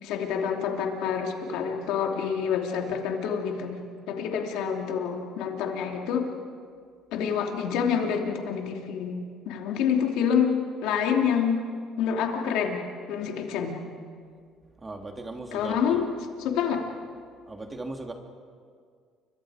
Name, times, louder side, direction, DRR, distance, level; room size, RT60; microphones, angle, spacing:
voice 1, 0.0-3.8 4.1-6.3 7.1-10.5 10.8-11.6 12.0-13.8 15.5-16.0 16.4-16.8, left 7 dB, 80° left, 2 dB, 2.9 m, -27 dB
voice 2, 14.8-16.0 17.5-18.1, right 2 dB, 20° right, 3 dB, 2.9 m, -38 dB
29.5 x 24.5 x 5.0 m, 2.1 s
cardioid pair, 95°, 0 cm